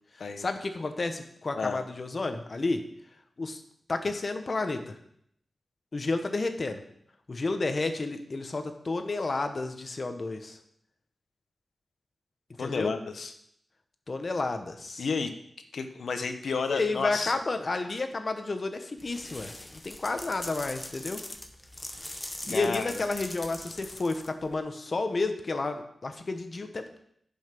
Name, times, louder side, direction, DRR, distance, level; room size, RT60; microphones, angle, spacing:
voice 1, 0.4-2.8 3.4-3.6 3.9-5.0 5.9-6.8 7.3-10.6 12.6-12.9 14.1-15.0 16.7-21.2 22.4-27.0, left 3 dB, 45° left, 7 dB, 1.1 m, -31 dB
voice 2, 12.6-13.3 15.0-15.3 15.7-17.3 22.5-23.0, left 5 dB, 80° left, 7 dB, 1.0 m, -31 dB
sound 1, 19.0-24.6, left 1 dB, 20° left, 1.0 m, -42 dB
11.0 x 5.7 x 5.9 m, 0.71 s
wide cardioid pair, 105°, 0 cm